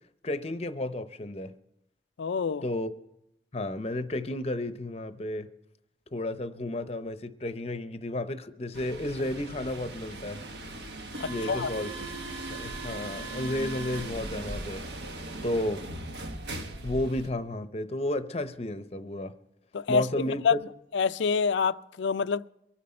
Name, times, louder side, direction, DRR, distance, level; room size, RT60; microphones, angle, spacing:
voice 1, 0.2-1.5 2.6-2.9 3.5-5.5 6.1-10.4 11.2-11.9 12.5-14.8 15.4-15.8 16.8-19.4 19.9-20.6, left 1 dB, 35° left, 0.7 m, -32 dB
voice 2, 2.2-2.6 11.2-11.7 19.7-20.6 20.9-22.5, left 5 dB, 80° left, 0.4 m, -27 dB
sound 1, 8.7-17.3, right 2 dB, 70° right, 1.1 m, -38 dB
24.0 x 9.4 x 4.3 m
head